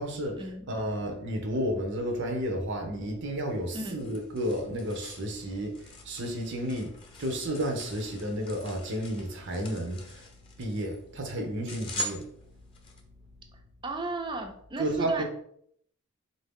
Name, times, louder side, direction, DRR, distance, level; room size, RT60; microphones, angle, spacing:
voice 1, 0.0-10.3 10.6-12.3 14.8-15.2, equal, 60° right, 3 dB, 0.8 m, -32 dB
sound 1, 3.5-13.0, right 1 dB, 25° left, 0.7 m, -43 dB
voice 2, 13.8-15.2, right 2 dB, 25° right, 4 dB, 0.5 m, -35 dB
3.9 x 2.7 x 3.5 m, 0.67 s
head